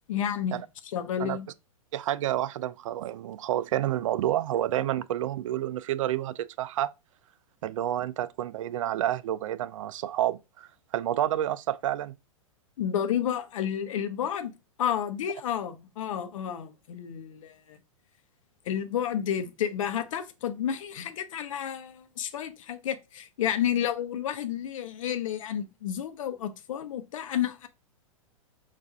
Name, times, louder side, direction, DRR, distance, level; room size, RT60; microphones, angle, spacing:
voice 1, 0.1-0.6 0.9-1.5 12.8-14.5 14.8-17.8 18.7-27.7, left 9 dB, 65° left, 0.7 m, -31 dB
voice 2, 1.9-6.9 7.6-12.2, right 12 dB, 65° right, 0.4 m, -29 dB
5.6 x 2.5 x 3.4 m
hypercardioid pair, 110°, 18 cm